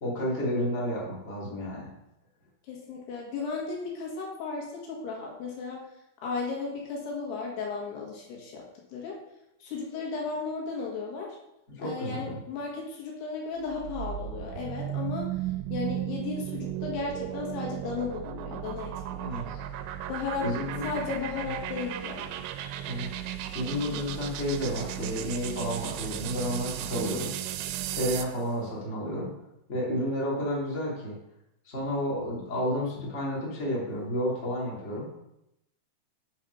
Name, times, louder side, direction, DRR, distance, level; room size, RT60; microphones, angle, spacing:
voice 1, 0.0-1.9 11.7-12.4 19.2-19.6 20.4-21.0 22.9-27.3 27.9-29.3 29.7-31.2 31.6-35.2, equal, 20° left, -5 dB, 2.3 m, -31 dB
voice 2, 2.7-5.8 6.2-8.7 8.9-9.2 9.6-11.4 11.8-15.4 15.7-19.4 20.1-20.5 20.8-22.3, left 4 dB, 75° left, -2 dB, 3.7 m, -35 dB
sound 1, 13.6-28.4, right 11 dB, 90° right, 2.7 m, -35 dB
8.4 x 5.6 x 5.2 m, 0.85 s
omnidirectional pair, 4.8 m